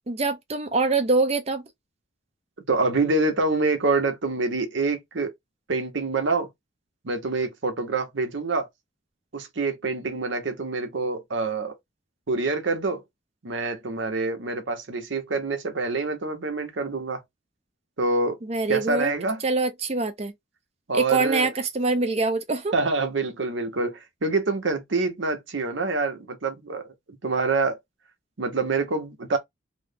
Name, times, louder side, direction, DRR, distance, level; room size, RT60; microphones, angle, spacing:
voice 1, 0.1-1.6 18.4-19.1 19.4-20.3 20.9-22.7, right 3 dB, 30° right, 0.6 m, -24 dB
voice 2, 2.7-5.3 5.7-6.5 7.0-8.7 9.3-11.7 12.3-13.0 13.4-17.2 18.0-18.4 18.7-19.4 20.9-21.5 22.7-26.9 27.2-27.8 28.4-29.4, right 3 dB, 65° right, 0.9 m, -26 dB
3.1 x 2.1 x 3.5 m
head